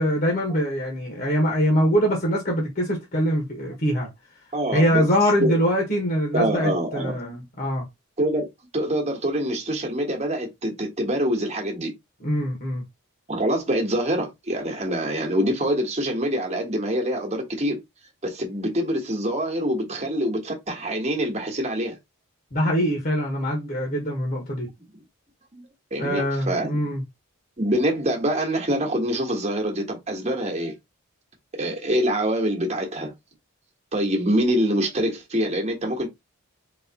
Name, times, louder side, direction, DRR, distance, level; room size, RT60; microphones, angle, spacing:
voice 1, 0.0-4.1 4.7-7.8 12.2-12.8 22.5-24.7 26.0-27.0, equal, 40° left, 1.2 m, -23 dB
voice 2, 4.5-5.0 5.4-5.5 6.3-7.4 8.2-8.5 8.7-11.9 13.3-17.8 18.2-22.0 24.9-25.0 25.5-26.8 27.6-30.7 31.6-33.1 33.9-36.1, equal, 30° right, 1.2 m, -25 dB
4.1 x 3.1 x 2.8 m
head